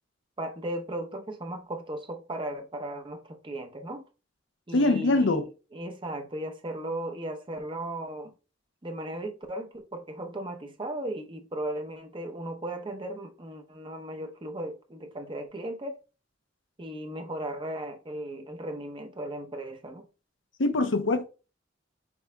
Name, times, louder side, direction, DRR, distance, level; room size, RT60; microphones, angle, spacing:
voice 1, 0.4-4.0 4.7-5.4 5.7-8.3 8.8-16.0 16.8-20.1, right 1 dB, 25° right, 0.7 m, -36 dB
voice 2, 4.7-5.5 20.6-21.3, left 2 dB, 80° left, 0.7 m, -23 dB
6.1 x 3.9 x 2.2 m
head